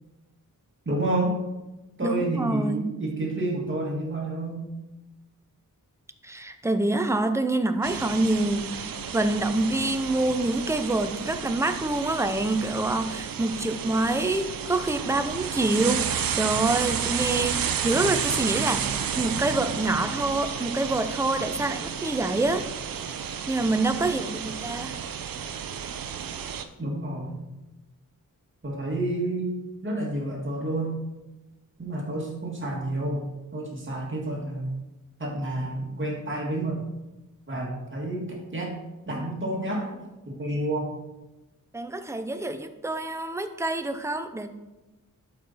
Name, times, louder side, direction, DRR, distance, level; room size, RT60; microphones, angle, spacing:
voice 1, 0.9-1.4 2.0-4.6 26.8-27.5 28.6-29.5 29.8-31.0 31.8-34.7 35.2-36.8 37.5-38.7 39.1-40.0 40.3-40.9, right 1 dB, 35° right, -2 dB, 2.0 m, -29 dB
voice 2, 2.0-2.8 6.2-22.7 23.5-25.0 41.7-44.5, right 2 dB, 10° right, 8 dB, 0.6 m, -26 dB
sound 1, 7.8-26.6, right 8 dB, 80° right, 0.7 m, -31 dB
11.5 x 4.7 x 4.2 m, 1.1 s
wide cardioid pair, 105°, 34 cm